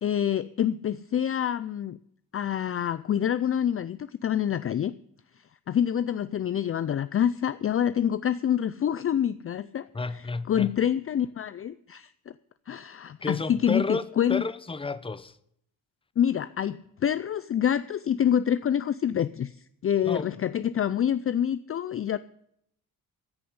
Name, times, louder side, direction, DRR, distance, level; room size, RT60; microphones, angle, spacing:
voice 1, 0.0-2.0 2.3-4.9 5.7-9.9 10.5-12.1 12.7-14.4 16.2-19.6 19.8-22.2, left 9 dB, 35° left, 0.5 m, -26 dB
voice 2, 9.9-10.7 13.2-14.0 14.3-15.4 20.0-20.3, left 3 dB, 15° left, 0.8 m, -31 dB
14.0 x 6.8 x 9.5 m
cardioid pair, 115°, 38 cm